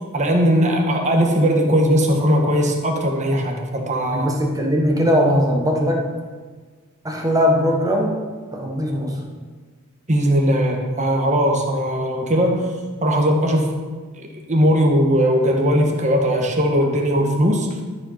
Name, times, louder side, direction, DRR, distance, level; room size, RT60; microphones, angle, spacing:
voice 1, 0.1-4.3 10.1-12.6 13.0-13.7 14.2-17.7, equal, 35° right, 2 dB, 1.5 m, -19 dB
voice 2, 4.1-6.1 7.0-8.2 8.5-9.2, equal, 15° right, 0 dB, 1.4 m, -19 dB
12.5 x 5.0 x 5.8 m, 1.5 s
head